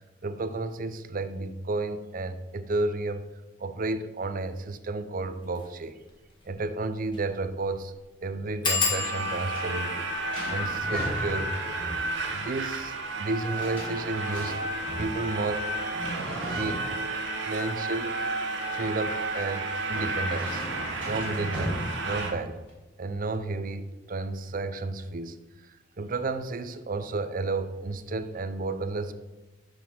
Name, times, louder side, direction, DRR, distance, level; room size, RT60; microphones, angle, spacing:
voice 1, 0.2-3.2 3.6-6.0 6.4-7.9 8.2-10.1 10.5-11.8 12.3-14.6 15.0-15.7 16.5-17.0 17.4-18.1 18.7-20.6 21.0-22.6 23.0-25.4 25.7-29.1, right 3 dB, 45° right, 11 dB, 0.6 m, -32 dB
sound 1, 5.5-5.7 6.1-6.2 6.4-6.5 7.1-7.3 7.6-7.7 8.6-13.9 14.6-15.1 15.4-15.8 16.0-16.1, left 4 dB, 25° left, 1.4 m, -34 dB
sound 2, 8.9-22.3, right 2 dB, 70° right, 1.1 m, -32 dB
sound 3, 9.4-22.7, equal, 5° left, 3.0 m, -39 dB
6.5 x 6.0 x 6.0 m, 1.1 s
head